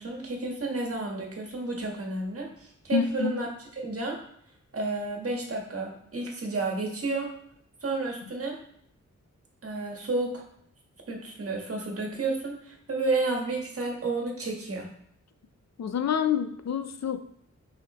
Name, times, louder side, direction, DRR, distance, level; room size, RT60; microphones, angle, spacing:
voice 1, 0.0-3.5 3.8-4.2 4.7-7.3 7.8-8.6 9.6-10.4 11.1-14.9, right 3 dB, 50° right, 0 dB, 1.4 m, -31 dB
voice 2, 2.9-3.3 15.8-17.2, left 7 dB, 65° left, 9 dB, 0.5 m, -27 dB
6.4 x 5.0 x 3.0 m, 0.68 s
wide cardioid pair, 110°, 29 cm